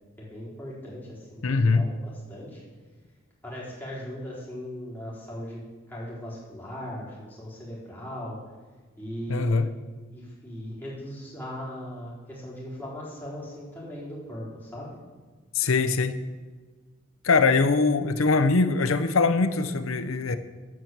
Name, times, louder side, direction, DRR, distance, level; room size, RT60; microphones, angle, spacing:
voice 1, 0.2-2.6 3.4-5.6 5.9-8.4 9.0-9.7 10.1-15.0, equal, 10° left, -7 dB, 4.3 m, -38 dB
voice 2, 1.4-1.8 9.3-9.7 15.5-16.1 17.2-20.4, left 4 dB, 80° left, 10 dB, 0.7 m, -22 dB
13.5 x 6.0 x 7.9 m, 1.4 s
head